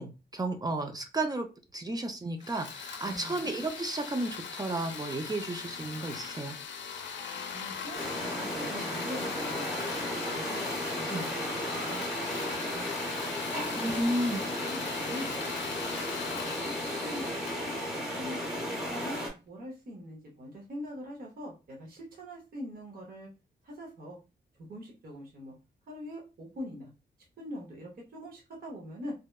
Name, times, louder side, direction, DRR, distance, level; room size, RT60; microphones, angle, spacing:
voice 1, 0.0-1.5 1.7-6.6 11.1-11.3 13.8-14.4, right 2 dB, 20° right, 6 dB, 0.3 m, -33 dB
sound 1, 2.4-18.6, left 6 dB, 80° left, 0.4 m, -40 dB
voice 2, 3.1-3.4 7.5-9.7 10.3-10.7 11.0-12.4 12.7-13.1 13.5-13.7 14.0-15.3 16.4-17.3 17.7-17.8 18.2-23.3 23.6-24.2 24.6-25.5 25.9-26.9 27.4-29.1, equal, 50° right, -2 dB, 0.7 m, -43 dB
sound 2, 7.9-19.3, equal, 5° right, 0.8 m, -35 dB
2.7 x 2.1 x 2.2 m, 0.30 s
wide cardioid pair, 125°, 19 cm